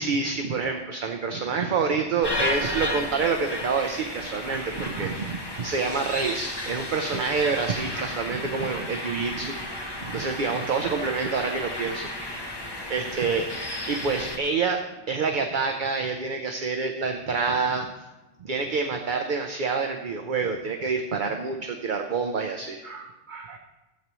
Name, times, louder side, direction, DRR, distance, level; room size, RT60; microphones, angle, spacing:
voice 1, 0.0-9.6 9.9-12.1 12.9-13.5 13.9-17.9 18.4-23.6, right 4 dB, 50° right, 4 dB, 0.8 m, -27 dB
sound 1, 2.2-14.4, left 1 dB, 20° left, 1.0 m, -33 dB
15.0 x 8.0 x 3.1 m, 1.1 s
omnidirectional pair, 1.2 m